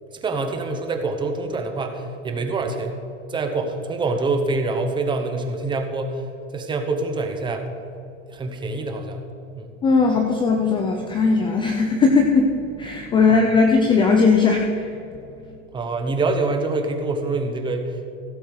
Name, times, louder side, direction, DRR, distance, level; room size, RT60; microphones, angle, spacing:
voice 1, 0.1-6.2 6.5-7.7 8.3-9.3 9.5-9.8 15.7-18.1, right 3 dB, 10° right, 5 dB, 0.8 m, -25 dB
voice 2, 9.8-15.0 15.5-15.6, left 4 dB, 15° left, 3 dB, 0.5 m, -18 dB
16.0 x 7.0 x 4.7 m, 2.7 s
supercardioid pair, 155°, 38 cm